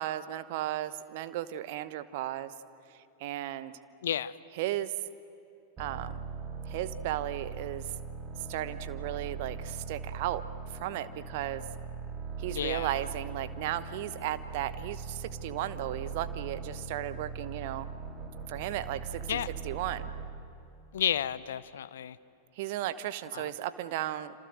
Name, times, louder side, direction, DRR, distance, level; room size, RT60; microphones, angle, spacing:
voice 1, 0.0-2.5 3.2-3.7 4.5-4.9 5.8-6.2 6.7-7.9 8.5-10.4 10.7-11.6 12.4-17.9 18.5-19.4 19.6-20.1 22.6-24.3, right 13 dB, 50° right, 13 dB, 1.1 m, -35 dB
voice 2, 4.0-4.3 12.5-12.9 19.3-19.5 20.9-22.2 23.3-23.5, left 10 dB, 60° left, 18 dB, 0.7 m, -31 dB
sound 1, 5.8-20.5, right 5 dB, 25° right, 3.1 m, -40 dB
27.5 x 27.0 x 7.8 m, 2.7 s
figure-of-eight pair, 90°, 0 cm